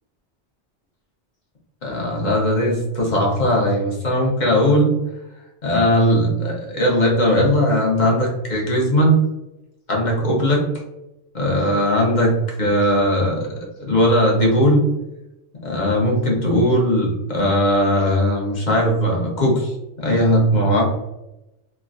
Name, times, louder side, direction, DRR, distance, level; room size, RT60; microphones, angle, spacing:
voice 1, 1.8-5.0 5.6-9.2 9.9-10.6 11.3-14.8 15.6-20.8, equal, 45° left, -2 dB, 0.8 m, -18 dB
3.3 x 2.1 x 2.4 m, 0.93 s
omnidirectional pair, 1.2 m